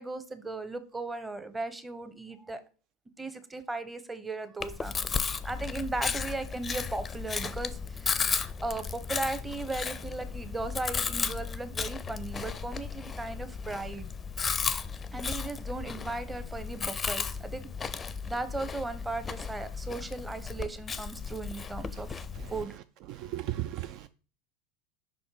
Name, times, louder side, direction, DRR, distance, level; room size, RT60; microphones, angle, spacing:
voice 1, 0.0-2.6 3.2-14.1 15.1-17.7 18.0-22.2 22.5-22.8, right 2 dB, 15° right, 0.9 m, -37 dB
Chewing mastication, 4.6-22.6, left 5 dB, 25° left, 0.5 m, -35 dB
voice 2, 23.1-24.1, right 14 dB, 55° right, 0.3 m, -35 dB
5.4 x 4.2 x 4.9 m
hypercardioid pair, 80°, 0 cm